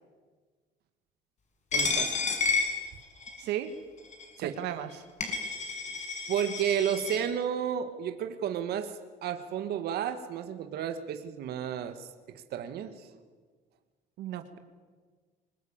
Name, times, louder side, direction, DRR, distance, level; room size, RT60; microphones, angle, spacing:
Coin (dropping), 1.7-3.5 4.1-4.3 4.9-5.0 5.2-7.2, left 4 dB, 45° left, 6.8 m, -30 dB
voice 1, 1.7-2.2 4.4-4.6 6.3-8.9 9.2-12.1 12.5-13.1, right 9 dB, 70° right, 9 dB, 1.9 m, -32 dB
voice 2, 3.4-3.7 4.4-5.0 14.2-14.6, right 12 dB, 85° right, 8 dB, 1.9 m, -35 dB
25.0 x 20.0 x 8.9 m, 1.5 s
cardioid pair, 110°, 17 cm